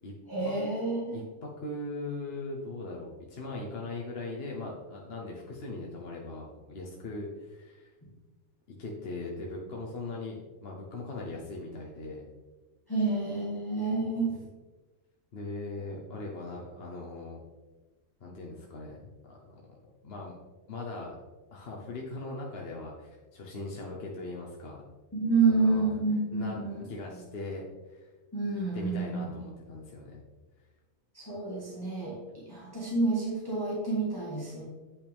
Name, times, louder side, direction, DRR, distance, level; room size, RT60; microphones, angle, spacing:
voice 1, 0.3-1.2 12.9-14.3 25.1-26.8 28.3-29.2 31.1-34.6, right 3 dB, 15° left, -5 dB, 1.6 m, -29 dB
voice 2, 1.1-7.9 8.8-12.2 15.3-17.4 18.2-19.6 20.0-20.4 20.7-21.2 21.5-24.8 25.4-25.9 26.3-26.6 26.9-28.1 28.7-30.2, left 2 dB, 50° left, -2 dB, 1.1 m, -40 dB
8.4 x 5.7 x 3.5 m, 1.3 s
omnidirectional pair, 1.4 m